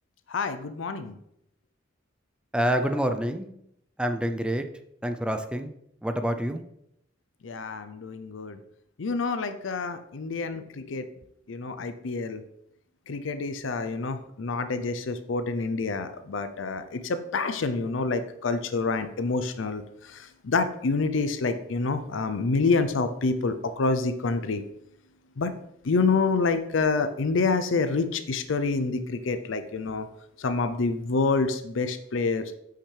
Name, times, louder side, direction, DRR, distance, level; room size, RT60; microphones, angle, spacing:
voice 1, 0.3-1.1 7.4-8.6 9.0-11.0 11.5-12.4 13.1-19.8 20.1-24.6 25.4-25.5 25.8-30.1 30.4-32.5, left 4 dB, 75° left, 10 dB, 0.5 m, -27 dB
voice 2, 2.5-3.5 4.0-4.6 5.0-5.7 6.0-6.6, equal, 5° right, 7 dB, 0.4 m, -27 dB
8.5 x 5.7 x 3.3 m, 0.75 s
head